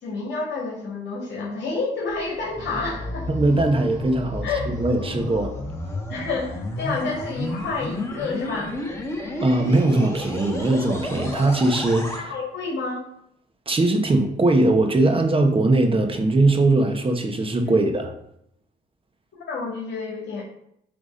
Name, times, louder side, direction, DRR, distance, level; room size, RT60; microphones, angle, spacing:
voice 1, 0.0-3.3 4.4-4.7 6.1-8.8 12.3-13.0 17.7-17.9 19.3-20.4, left 3 dB, 65° left, -3 dB, 2.1 m, -29 dB
sound 1, 2.1-12.2, left 1 dB, 15° left, 1.6 m, -32 dB
voice 2, 3.3-5.5 9.4-12.3 13.7-18.1, right 2 dB, 25° right, 4 dB, 1.2 m, -20 dB
8.4 x 3.4 x 5.2 m, 0.75 s
cardioid pair, 90°, 20 cm